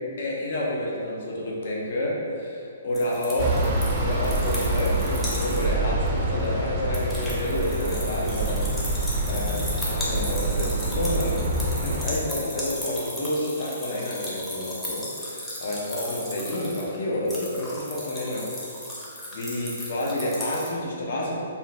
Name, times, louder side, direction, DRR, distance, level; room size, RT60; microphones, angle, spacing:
voice 1, 0.2-3.4 4.0-11.5 11.7-18.5 19.3-21.4, left 1 dB, 55° left, -3 dB, 0.5 m, -29 dB
sound 1, 2.9-5.7 6.1-6.2 6.5-20.7, left 1 dB, 5° left, 0.6 m, -36 dB
sound 2, 3.4-12.1, right 2 dB, 40° right, 0.4 m, -26 dB
2.4 x 2.1 x 2.9 m, 2.5 s
figure-of-eight pair, 130°, 0 cm